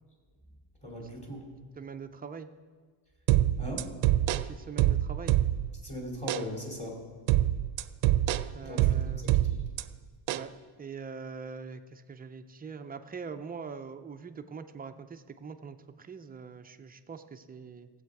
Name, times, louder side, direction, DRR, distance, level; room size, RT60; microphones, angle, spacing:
voice 1, 0.8-1.5 3.6-3.9 5.8-7.0 8.6-9.6, equal, 15° left, -1 dB, 2.5 m, -39 dB
voice 2, 1.8-2.5 4.3-5.3 8.5-9.3 10.3-10.5 10.8-17.9, right 5 dB, 20° right, 8 dB, 0.4 m, -43 dB
sound 1, 3.3-5.8 6.3-6.5 7.3-9.8 10.3-10.5, right 14 dB, 70° right, 0.6 m, -26 dB
17.0 x 7.8 x 4.7 m, 1.5 s
cardioid pair, 145°, 49 cm